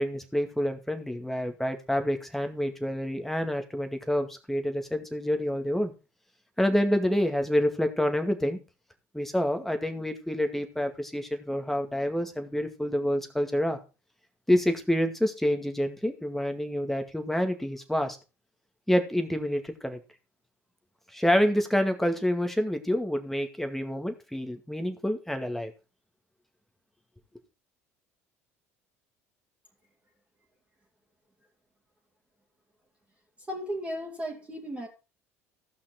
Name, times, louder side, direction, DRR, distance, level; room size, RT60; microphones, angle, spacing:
voice 1, 0.0-5.9 6.6-8.6 9.1-13.8 14.5-18.2 18.9-20.0 21.1-25.7, equal, 5° left, 6 dB, 2.1 m, -27 dB
voice 2, 33.5-34.9, equal, 15° right, -2 dB, 2.7 m, -35 dB
15.0 x 5.8 x 4.4 m, 0.31 s
hypercardioid pair, 65°, 8 cm